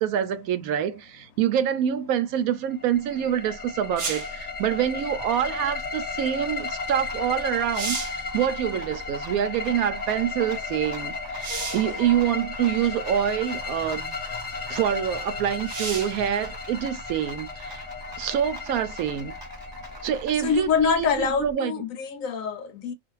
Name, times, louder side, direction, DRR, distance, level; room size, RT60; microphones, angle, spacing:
voice 1, 0.0-14.2 14.7-17.8 18.2-19.4 20.0-21.7, right 10 dB, 75° right, 1.0 m, -26 dB
sound 1, 2.7-20.5, left 4 dB, 35° left, 0.7 m, -35 dB
Rattle, 3.0-21.5, equal, 20° right, 1.0 m, -44 dB
sound 2, 4.0-4.4 7.1-7.2 7.6-8.3 11.4-11.9 13.0-13.1 15.6-16.2 19.8-19.9, right 4 dB, 50° right, 0.9 m, -32 dB
voice 2, 11.4-12.2 12.8-12.9 14.7-14.8 18.2-18.3 20.4-22.9, left 6 dB, 70° left, 0.9 m, -26 dB
2.4 x 2.4 x 3.0 m
omnidirectional pair, 1.5 m